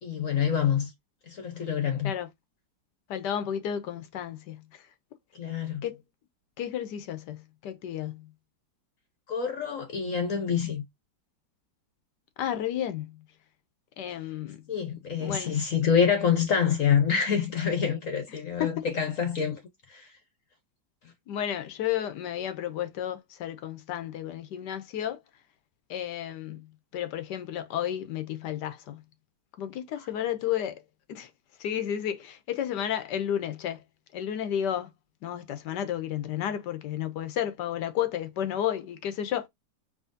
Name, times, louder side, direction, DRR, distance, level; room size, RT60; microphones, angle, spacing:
voice 1, 0.0-0.9 1.3-2.1 5.3-5.8 9.3-10.8 14.7-19.6 19.9-20.1, left 7 dB, 55° left, 1.1 m, -26 dB
voice 2, 3.1-4.9 5.8-6.0 6.6-8.3 12.4-13.2 14.0-14.6 15.2-15.6 18.6-18.7 21.3-25.2 25.9-26.7 26.9-29.0 29.6-30.8 31.1-31.3 31.6-33.8 34.1-34.9 35.2-39.5, left 10 dB, 75° left, 1.2 m, -32 dB
4.9 x 3.1 x 2.6 m
omnidirectional pair, 2.0 m